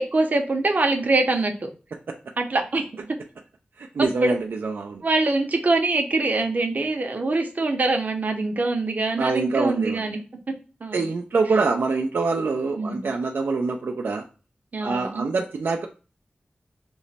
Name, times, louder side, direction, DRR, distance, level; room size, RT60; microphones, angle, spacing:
voice 1, 0.0-1.7 2.4-3.1 4.2-4.3 5.0-10.2 10.8-11.1 12.8-13.1 14.7-15.3, right 2 dB, 50° right, 4 dB, 0.7 m, -24 dB
voice 2, 3.8-5.0 9.1-10.2 10.9-14.2 14.8-15.9, right 4 dB, 80° right, 2 dB, 0.3 m, -25 dB
3.0 x 2.1 x 4.0 m, 0.35 s
wide cardioid pair, 80°, 4 cm